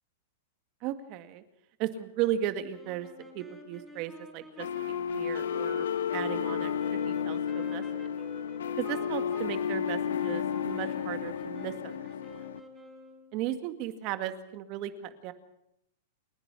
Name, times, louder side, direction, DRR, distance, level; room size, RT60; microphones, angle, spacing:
voice 1, 0.8-1.4 1.8-3.1 3.3-4.7 5.1-8.1 8.8-12.0 13.3-15.3, right 12 dB, 40° right, 10 dB, 2.1 m, -35 dB
sound 1, 2.7-13.4, equal, ahead, 4.7 m, -48 dB
sound 2, 4.6-12.6, left 8 dB, 85° left, 1.1 m, -32 dB
29.0 x 11.0 x 8.4 m, 0.78 s
hypercardioid pair, 145°, 0 cm